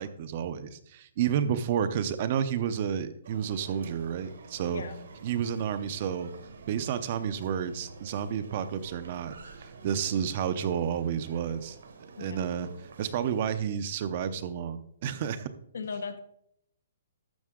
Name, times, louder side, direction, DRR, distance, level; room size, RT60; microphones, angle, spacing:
voice 1, 0.0-4.8 5.2-6.3 6.7-9.3 9.6-11.8 12.2-12.7 13.0-15.5, right 8 dB, 35° right, 12 dB, 0.6 m, -30 dB
sound 1, 3.2-13.4, right 4 dB, 80° right, 1.7 m, -49 dB
voice 2, 15.7-16.2, left 5 dB, 85° left, 8 dB, 1.3 m, -37 dB
12.5 x 7.4 x 3.7 m, 0.70 s
hypercardioid pair, 175°, 0 cm